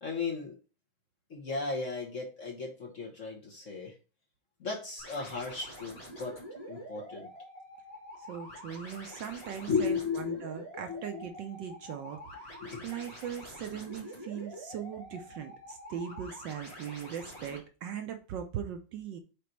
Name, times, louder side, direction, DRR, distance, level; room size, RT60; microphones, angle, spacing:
voice 1, 0.0-0.5 1.3-3.9 4.6-6.4 6.7-7.3 9.7-10.4 10.9-11.2 12.6-12.9, left 5 dB, 45° left, 1.2 m, -35 dB
sound 1, 5.0-17.6, equal, 15° left, 2.8 m, -47 dB
voice 2, 8.2-19.2, right 8 dB, 70° right, 1.2 m, -40 dB
5.2 x 4.1 x 4.4 m
omnidirectional pair, 2.3 m